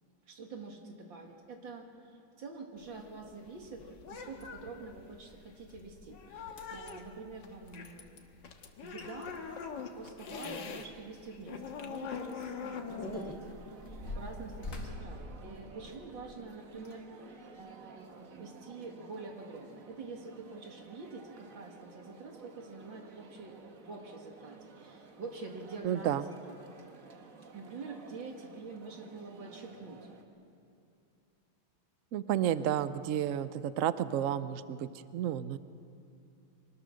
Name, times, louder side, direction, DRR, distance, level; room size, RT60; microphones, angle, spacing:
voice 1, 0.3-8.3 8.8-9.4 10.0-13.4 13.9-17.3 17.6-26.6 27.5-30.1 32.3-32.7, right 3 dB, 65° right, 2 dB, 2.7 m, -46 dB
sound 1, 2.8-10.9 11.2-14.9, left 6 dB, 65° left, 1.9 m, -43 dB
sound 2, 6.0-6.1 6.5-6.9 8.6-8.7 9.0-9.1 9.4-11.2 11.6-11.7 12.4-16.1 16.7-17.0 17.6-17.7, left 2 dB, 40° left, 2.7 m, -45 dB
sound 3, 13.0-30.2, right 4 dB, 45° right, 1.6 m, -53 dB
voice 2, 25.8-26.2 32.1-35.6, right 10 dB, 85° right, 14 dB, 0.7 m, -31 dB
24.0 x 19.5 x 6.4 m, 2.6 s
omnidirectional pair, 2.2 m